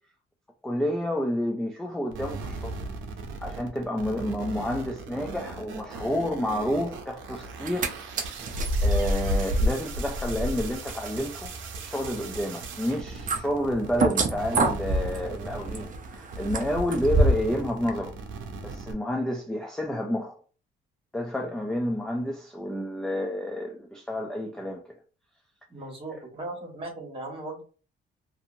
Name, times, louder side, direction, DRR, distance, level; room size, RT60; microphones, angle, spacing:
voice 1, 0.6-2.8 3.4-8.1 8.8-11.5 11.8-18.2 18.6-20.4 21.1-24.8, left 1 dB, 5° left, 0.4 m, -30 dB
sound 1, 2.1-14.1 14.3-18.9, right 4 dB, 80° right, 0.7 m, -39 dB
sound 2, 7.5-7.9 8.2-17.5 17.9-18.0, right 1 dB, 45° right, 0.6 m, -27 dB
voice 2, 25.7-27.6, right 2 dB, 25° right, 1.5 m, -37 dB
2.7 x 2.6 x 2.6 m
cardioid pair, 100°, 20 cm